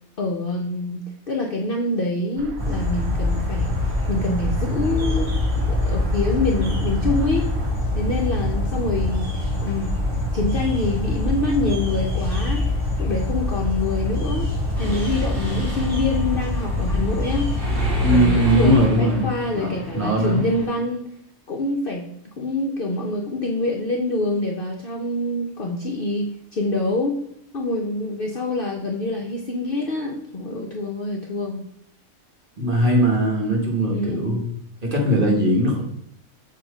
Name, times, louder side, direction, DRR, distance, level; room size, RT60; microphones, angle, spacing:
voice 1, 0.2-5.3 5.6-7.5 8.0-9.3 9.6-9.9 10.3-12.6 13.0-14.5 14.8-17.5 18.1-21.0 21.5-22.1 22.4-27.2 27.5-31.6 33.9-34.4, left 2 dB, 55° left, 0 dB, 0.6 m, -26 dB
sound 1, 2.4-7.7, right 1 dB, 80° right, 1.0 m, -34 dB
sound 2, 2.6-18.3, left 2 dB, 20° right, 2.8 m, -24 dB
Mechanisms, 14.8-20.7, right 4 dB, 15° left, 1.7 m, -30 dB
voice 2, 18.0-20.4 32.6-34.4 34.8-35.8, equal, 40° right, -1 dB, 1.3 m, -20 dB
7.1 x 2.8 x 4.8 m, 0.70 s
omnidirectional pair, 1.5 m